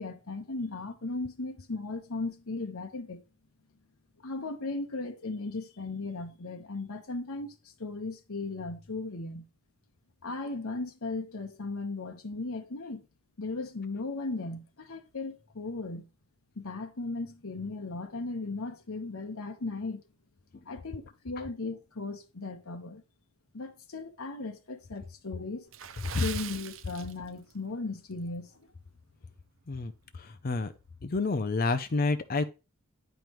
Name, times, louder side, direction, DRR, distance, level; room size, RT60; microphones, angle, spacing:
voice 1, 0.0-3.2 4.2-7.5 7.8-9.5 10.2-13.0 13.4-16.1 16.6-20.0 20.7-23.0 23.5-25.7 26.1-28.5, left 3 dB, 80° left, 1.1 m, -37 dB
Water / Splash splatter, 25.7-27.6 27.9-28.1 28.7-28.9 29.4-29.5, right 10 dB, 65° right, 0.5 m, -42 dB
voice 2, 29.7-30.7 31.0-32.5, left 3 dB, 40° left, 0.4 m, -29 dB
9.0 x 5.2 x 3.0 m
head